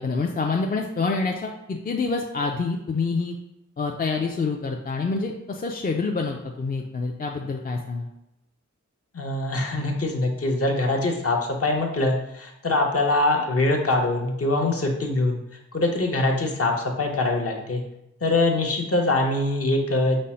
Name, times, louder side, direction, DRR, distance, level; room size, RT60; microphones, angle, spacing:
voice 1, 0.0-3.3 3.8-8.1, left 4 dB, 30° left, 1 dB, 0.4 m, -27 dB
voice 2, 9.1-15.4 15.7-17.8 18.2-20.2, left 2 dB, 50° left, 2 dB, 0.8 m, -23 dB
5.3 x 2.0 x 4.2 m, 0.85 s
wide cardioid pair, 105°, 30 cm